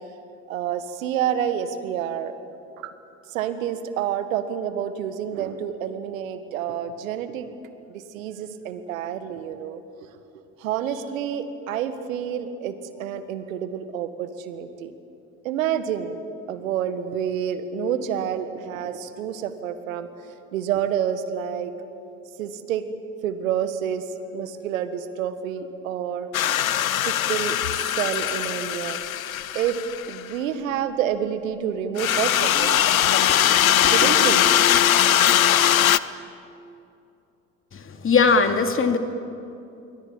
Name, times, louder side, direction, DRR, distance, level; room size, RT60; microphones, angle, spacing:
voice 1, 0.5-2.3 3.3-7.5 7.9-9.8 10.6-14.9 15.4-16.2 16.5-20.1 20.5-21.7 22.4-22.9 23.2-24.0 24.3-26.3 27.1-29.0 29.6-29.8 30.1-32.8 33.9-34.5 35.1-35.3 35.6-35.7, right 9 dB, 75° right, 11 dB, 1.8 m, -28 dB
sound 1, 26.3-30.2 32.0-36.0, left 11 dB, 90° left, 0.7 m, -20 dB
voice 2, 33.0-33.9 37.7-39.0, left 5 dB, 30° left, 6 dB, 2.5 m, -22 dB
27.5 x 23.5 x 8.8 m, 2.7 s
hypercardioid pair, 60°, 40 cm